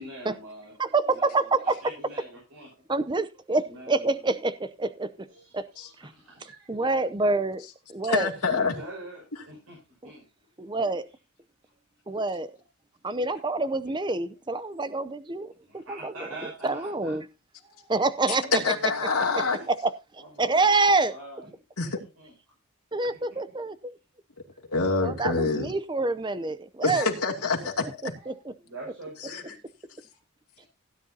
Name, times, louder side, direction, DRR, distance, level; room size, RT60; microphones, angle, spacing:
voice 1, 0.0-0.8 1.1-2.7 3.6-4.3 5.3-6.8 8.4-10.2 14.7-14.9 15.6-17.2 17.6-17.9 18.3-19.7 20.2-21.5 21.8-22.3 28.2-29.6 30.6-30.7, right 1 dB, 80° right, 5.6 m, -45 dB
voice 2, 0.8-1.7 2.9-5.1 5.5-5.6 6.0-6.1 6.7-7.6 7.9-8.3 10.0-10.1 10.6-11.1 12.1-12.5 13.0-16.3 16.6-17.2 17.9-18.9 19.3-21.1 22.9-23.9 25.0-27.1 27.8-28.5, right 3 dB, 20° right, 0.6 m, -27 dB
voice 3, 8.1-8.7 18.5-19.6 21.8-22.0 24.7-25.7 26.8-27.8 29.3-29.4, left 4 dB, 90° left, 2.7 m, -26 dB
16.5 x 9.8 x 2.8 m
head